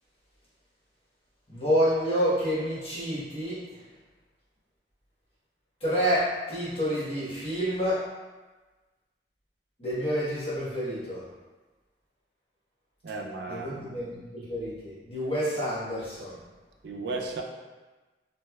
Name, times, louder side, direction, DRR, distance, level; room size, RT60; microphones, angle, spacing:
voice 1, 1.5-3.6 5.8-8.0 9.8-11.2 13.5-16.4, equal, 35° left, -11 dB, 1.2 m, -28 dB
voice 2, 13.0-13.8 16.8-17.4, right 3 dB, 70° right, 1 dB, 0.4 m, -34 dB
3.1 x 2.8 x 2.2 m, 1.2 s
head